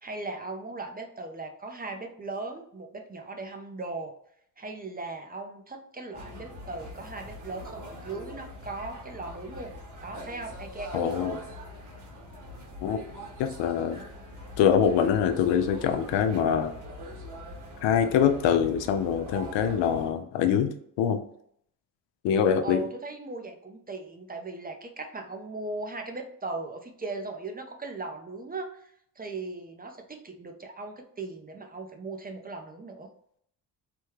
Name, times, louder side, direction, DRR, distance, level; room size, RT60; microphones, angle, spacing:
voice 1, 0.0-4.1 4.6-9.7 10.0-11.4 22.6-33.1, right 3 dB, 20° right, 4 dB, 0.6 m, -38 dB
sound 1, 6.1-20.1, left 1 dB, 45° right, 1.4 m, -43 dB
voice 2, 10.9-11.4 12.8-13.0 13.4-14.0 14.6-16.7 17.8-21.2 22.2-22.8, left 8 dB, 80° left, 8 dB, 0.6 m, -24 dB
3.4 x 2.2 x 3.1 m, 0.67 s
supercardioid pair, 60°, 43 cm